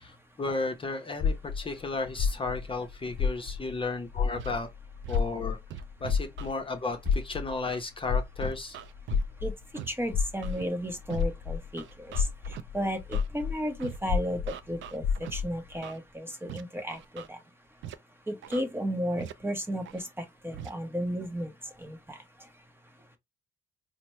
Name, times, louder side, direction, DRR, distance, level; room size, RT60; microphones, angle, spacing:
voice 1, 0.0-4.7 5.1-5.6 6.0-8.8, left 3 dB, 25° left, 0.7 m, -34 dB
sound 1, 1.2-3.8 4.1-11.7 12.1-15.6, left 6 dB, 65° left, 0.5 m, -30 dB
Scratching (performance technique), 4.3-4.5 5.0-5.2 5.7-6.5 7.0-7.1 7.7-7.9 8.4-9.2 9.7-9.9 10.4-10.6 11.1-11.2 11.8-12.6 13.1-13.3 13.8-14.0 14.5-15.3 15.8-16.0 16.5-16.6 16.9-17.3 17.8-17.9 18.4-18.6 19.2-19.3 19.8-20.0 20.5-20.7, right 9 dB, 75° right, 0.5 m, -41 dB
voice 2, 9.9-15.0 15.3-17.4 18.3-21.5 21.8-22.2, equal, 10° right, 0.9 m, -34 dB
4.2 x 2.1 x 3.0 m
cardioid pair, 90°, 20 cm